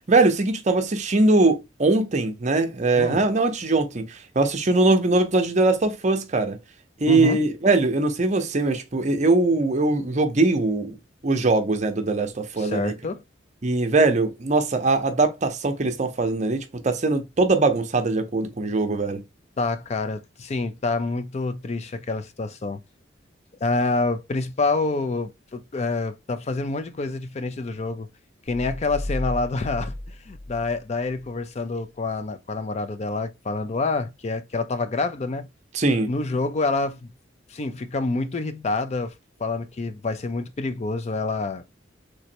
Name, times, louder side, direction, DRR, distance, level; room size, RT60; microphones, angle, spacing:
voice 1, 0.1-6.6 7.0-11.0 11.2-12.9 13.6-19.2 35.7-36.1, right 2 dB, 35° right, 0.6 m, -21 dB
voice 2, 7.1-7.4 12.6-13.2 19.6-22.8 23.6-28.1 28.5-35.5 36.1-37.1 37.5-39.1 39.4-41.6, left 3 dB, 35° left, 0.4 m, -27 dB
sound 1, 28.5-31.3, left 1 dB, 5° left, 0.9 m, -34 dB
3.3 x 3.1 x 2.8 m
head